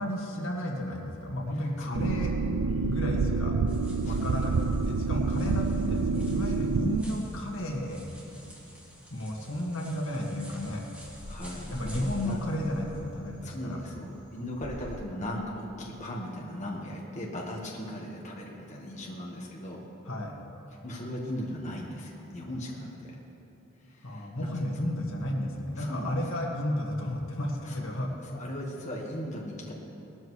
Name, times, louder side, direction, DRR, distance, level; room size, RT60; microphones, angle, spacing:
voice 1, 0.0-2.3 2.8-3.5 4.0-4.5 4.8-8.0 9.1-10.9 11.7-13.8 20.1-20.4 24.0-28.1, left 1 dB, 75° left, -1 dB, 1.8 m, -33 dB
voice 2, 1.5-2.1 2.7-3.0 4.0-4.4 11.2-12.4 13.4-19.8 20.7-23.1 23.9-24.7 25.8-26.2 27.6-29.7, left 1 dB, 35° left, -3 dB, 1.4 m, -38 dB
sound 1, 1.9-7.0, right 4 dB, 80° right, 0.4 m, -28 dB
sound 2, 3.7-15.0, equal, 5° right, 2.1 m, -47 dB
19.0 x 13.0 x 3.2 m, 2.9 s
head